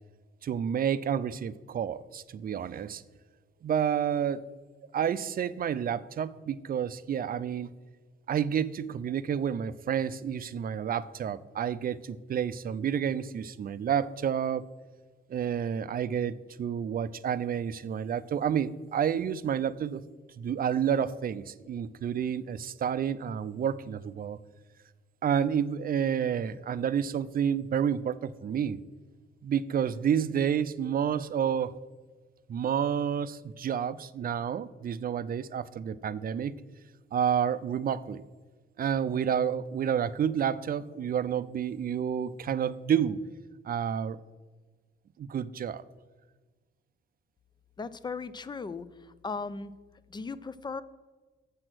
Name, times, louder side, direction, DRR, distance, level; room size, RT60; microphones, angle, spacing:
voice 1, 0.4-3.0 3.6-4.4 4.9-7.7 8.3-14.6 15.3-20.0 20.4-24.4 25.2-28.8 29.4-31.7 32.5-36.5 37.1-38.2 38.8-43.2 43.7-44.2 45.2-45.8, right 8 dB, 45° right, 16 dB, 0.4 m, -29 dB
voice 2, 47.8-48.9 49.2-49.7 50.1-50.8, left 4 dB, 20° left, 15 dB, 0.4 m, -36 dB
7.6 x 6.1 x 6.1 m, 1.3 s
cardioid pair, 115°, 20 cm